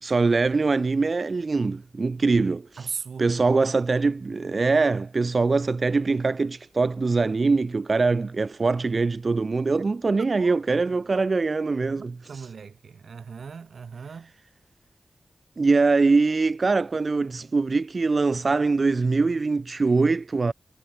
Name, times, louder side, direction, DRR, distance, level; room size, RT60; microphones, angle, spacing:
voice 1, 0.0-2.9 3.2-12.5 15.6-20.5, right 3 dB, 50° right, 0.4 m, -23 dB
voice 2, 2.8-3.3 10.2-11.0 11.9-14.3, right 6 dB, 85° right, 2.7 m, -38 dB
wide cardioid pair, 70°, 0 cm